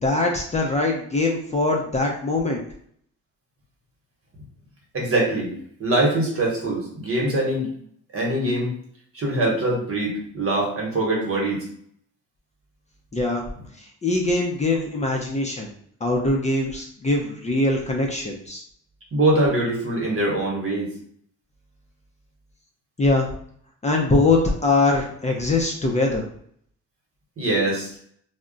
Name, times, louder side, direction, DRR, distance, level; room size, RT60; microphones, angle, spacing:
voice 1, 0.0-2.6 13.1-13.4 14.0-15.7 16.0-18.6 23.0-23.3 23.8-26.2, left 2 dB, 25° left, 0 dB, 0.5 m, -22 dB
voice 2, 4.9-5.5 5.8-7.7 8.1-8.7 9.1-11.6 19.1-20.9 27.4-28.0, right 1 dB, 45° right, -1 dB, 1.1 m, -23 dB
2.3 x 2.1 x 3.8 m, 0.64 s
cardioid pair, 90°, 30 cm